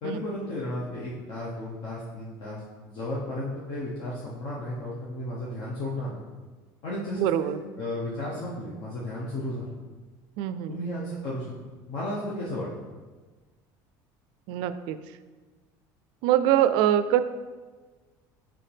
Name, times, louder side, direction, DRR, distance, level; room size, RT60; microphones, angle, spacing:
voice 1, 0.0-2.6 2.9-6.2 6.8-9.7 10.7-11.5 11.9-12.7, left 1 dB, 55° left, -6 dB, 1.1 m, -34 dB
voice 2, 7.2-7.6 10.4-10.8 14.5-15.0 16.2-17.2, right 11 dB, 70° right, 12 dB, 0.3 m, -23 dB
5.5 x 5.2 x 3.4 m, 1.3 s
cardioid pair, 135°, 9 cm